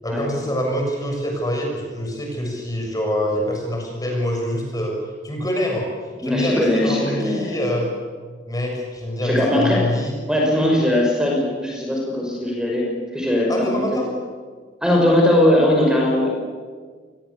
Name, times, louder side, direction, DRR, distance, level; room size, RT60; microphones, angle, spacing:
voice 1, 0.0-4.9 5.2-5.9 6.2-7.9 8.5-10.2 13.5-14.1, equal, 20° left, 1 dB, 7.1 m, -25 dB
voice 2, 6.2-7.5 9.2-9.8 10.3-12.8 13.1-14.0 14.8-16.3, left 1 dB, 5° right, -1 dB, 5.9 m, -19 dB
28.5 x 21.5 x 8.4 m, 1.5 s
head